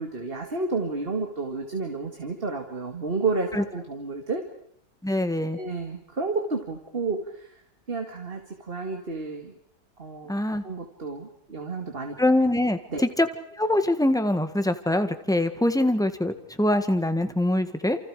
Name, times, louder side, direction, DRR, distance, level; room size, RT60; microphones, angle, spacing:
voice 1, 0.0-4.4 5.6-7.5 7.9-9.5 10.0-10.3 10.6-12.2 12.9-13.0, right 3 dB, 35° right, 4 dB, 2.3 m, -31 dB
voice 2, 5.0-5.6 10.3-10.6 12.2-13.3 13.6-18.0, left 1 dB, ahead, 8 dB, 1.6 m, -23 dB
29.5 x 28.5 x 5.0 m, 0.66 s
omnidirectional pair, 1.7 m